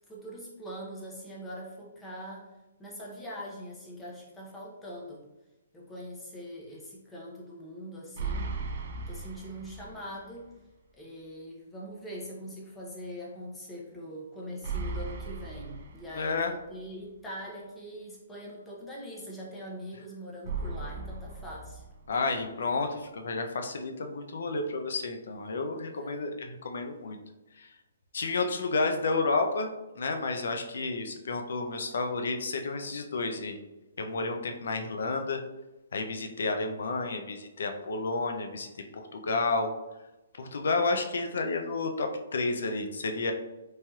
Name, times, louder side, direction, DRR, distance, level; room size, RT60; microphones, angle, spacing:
voice 1, 0.1-2.5 2.8-5.3 5.7-8.5 9.1-10.5 10.9-21.8 25.9-26.3, equal, 5° left, -5 dB, 0.6 m, -42 dB
sound 1, 8.2-10.2 10.5-10.6 14.6-16.6 20.4-22.4, right 4 dB, 45° right, 0.3 m, -37 dB
voice 2, 16.1-16.5 22.1-27.2 27.6-27.7 28.1-29.7 29.9-33.6 34.0-35.4 35.9-38.7 38.9-39.7 40.4-43.3, left 3 dB, 70° left, 5 dB, 0.4 m, -31 dB
3.1 x 2.7 x 2.3 m, 1.0 s
hypercardioid pair, 165°, 0 cm